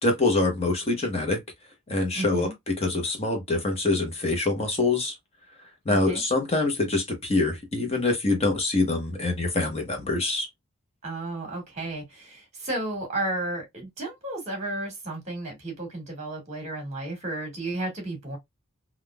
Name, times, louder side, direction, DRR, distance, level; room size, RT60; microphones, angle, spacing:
voice 1, 0.0-1.4 1.9-5.1 5.9-10.5, left 2 dB, 30° left, 0.8 m, -25 dB
voice 2, 2.1-2.5 5.9-6.2 11.0-18.4, right 2 dB, 35° right, 1.6 m, -33 dB
3.5 x 2.4 x 2.2 m
head